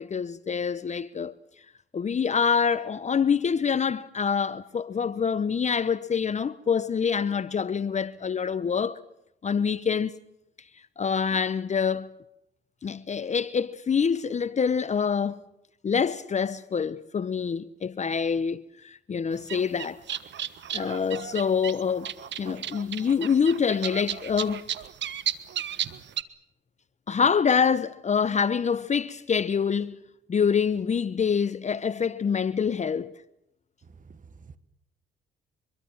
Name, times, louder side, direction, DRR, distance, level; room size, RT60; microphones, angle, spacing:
voice 1, 0.0-1.3 1.9-9.0 9.4-10.1 11.0-12.1 12.8-15.4 15.8-20.0 20.7-22.1 22.4-24.7 27.1-30.0 30.3-33.1, left 6 dB, 35° left, 0.8 m, -26 dB
sound 1, 19.3-26.2, right 10 dB, 65° right, 1.4 m, -34 dB
voice 2, 33.9-34.6, right 5 dB, 40° right, 1.5 m, -50 dB
25.0 x 23.5 x 7.3 m
cardioid pair, 90°, 20 cm